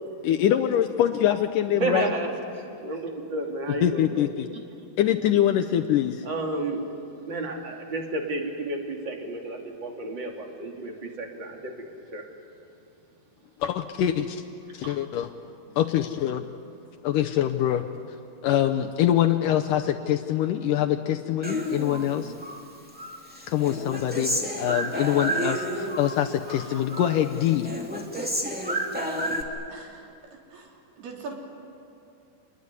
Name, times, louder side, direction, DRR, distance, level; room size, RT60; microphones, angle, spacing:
voice 1, 0.2-2.1 3.8-4.5 5.0-6.2 13.6-14.4 14.7-15.3 15.8-16.5 17.0-17.9 18.4-22.3 23.5-27.7, left 11 dB, 75° left, 5 dB, 2.1 m, -24 dB
voice 2, 1.8-4.3 4.5-4.6 6.2-6.8 7.3-12.2 14.8-15.0, right 2 dB, 30° right, 1 dB, 3.1 m, -31 dB
Human voice, 21.4-22.6 23.0-26.2 26.4-27.2 27.4-29.4, equal, 5° right, 1.6 m, -30 dB
voice 3, 26.5-27.0 27.4-27.9 29.7-30.1 30.5-31.4, right 4 dB, 85° right, 0 dB, 5.5 m, -43 dB
27.5 x 21.0 x 9.7 m, 2.6 s
omnidirectional pair, 4.4 m